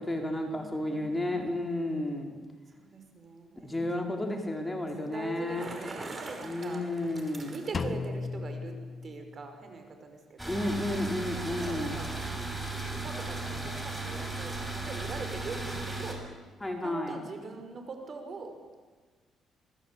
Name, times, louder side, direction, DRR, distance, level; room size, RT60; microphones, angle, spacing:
voice 1, 0.0-2.3 3.6-5.7 6.4-7.5 10.5-12.0 16.6-17.2, left 1 dB, 15° left, 2 dB, 4.5 m, -32 dB
voice 2, 0.6-1.7 2.7-6.9 7.5-10.7 11.2-16.2 16.8-18.8, right 4 dB, 45° right, 6 dB, 5.7 m, -43 dB
Bicycle, 5.2-8.1, right 3 dB, 30° right, 5.4 m, -43 dB
Drum, 7.7-9.7, left 4 dB, 40° left, 1.1 m, -36 dB
sound 1, 10.4-16.1, right 2 dB, 5° right, 6.8 m, -36 dB
27.0 x 19.5 x 8.6 m, 1.4 s
cardioid pair, 90°, 0 cm